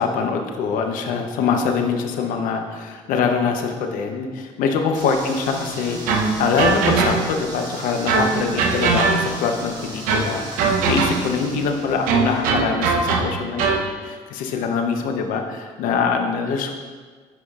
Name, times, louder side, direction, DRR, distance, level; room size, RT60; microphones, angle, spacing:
voice 1, 0.0-16.7, left 5 dB, 75° left, 4 dB, 0.8 m, -24 dB
sound 1, 4.9-12.4, right 1 dB, 30° right, 1.7 m, -36 dB
sound 2, 6.1-7.5 8.1-9.5 10.1-11.4 12.1-13.9, right 4 dB, 80° right, 0.8 m, -21 dB
10.5 x 4.9 x 2.4 m, 1.5 s
supercardioid pair, 90°, 14 cm